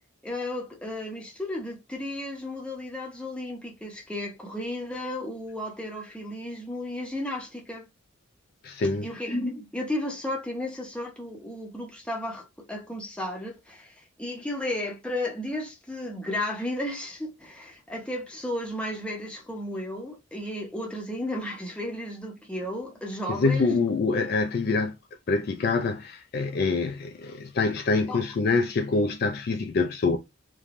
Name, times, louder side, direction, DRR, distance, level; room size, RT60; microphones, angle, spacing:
voice 1, 0.2-7.9 9.0-23.8 28.1-28.2, left 1 dB, 5° left, 0.7 m, -33 dB
voice 2, 8.6-9.1 23.3-25.0 25.3-30.2, left 3 dB, 45° left, 0.3 m, -25 dB
3.1 x 2.2 x 2.5 m
head